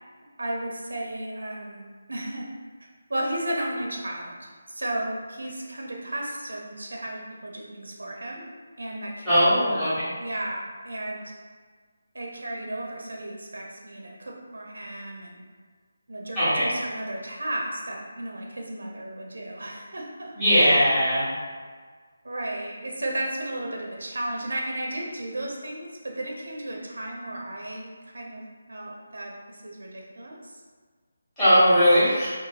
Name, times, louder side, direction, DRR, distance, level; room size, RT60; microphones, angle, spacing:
voice 1, 0.4-1.8 2.1-2.5 2.8-8.4 8.8-11.3 12.1-15.4 16.1-20.8 22.2-28.4 28.7-30.6, right 1 dB, 90° right, -1 dB, 0.7 m, -34 dB
voice 2, 9.2-10.1 16.3-16.7 20.4-21.3 31.4-32.3, equal, 10° left, -16 dB, 1.1 m, -19 dB
2.7 x 2.6 x 2.7 m, 1.5 s
figure-of-eight pair, 175°, 0 cm